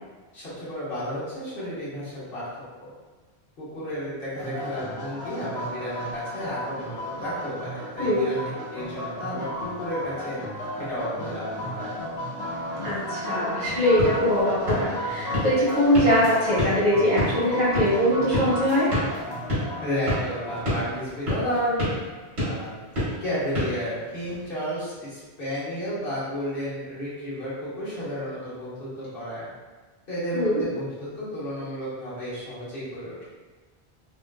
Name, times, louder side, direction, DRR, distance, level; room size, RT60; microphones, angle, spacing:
voice 1, 0.3-2.4 2.8-2.9 3.6-10.4 10.9-11.9 19.8-21.8 22.4-22.8 23.2-29.5 30.1-33.3, equal, 60° left, -10 dB, 1.3 m, -32 dB
sound 1, 4.4-20.7, equal, 85° left, 1.1 m, -34 dB
voice 2, 12.8-18.9 30.3-30.6, equal, 45° right, -10 dB, 1.0 m, -22 dB
sound 2, 13.7-24.5, equal, 70° right, 1.8 m, -31 dB
3.6 x 2.5 x 2.2 m, 1.3 s
omnidirectional pair, 1.1 m